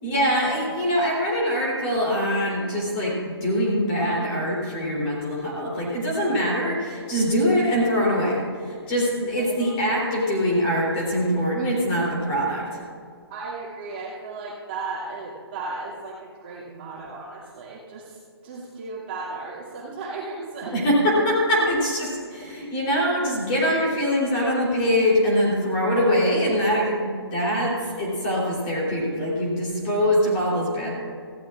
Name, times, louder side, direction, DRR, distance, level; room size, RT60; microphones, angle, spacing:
voice 1, 0.0-12.8 20.7-30.9, equal, 20° left, -5 dB, 3.4 m, -23 dB
voice 2, 9.4-9.9 13.3-20.8 21.6-21.7 22.4-22.5, right 3 dB, 25° right, -7 dB, 2.6 m, -35 dB
18.5 x 15.5 x 2.5 m, 2.2 s
hypercardioid pair, 170°, 14 cm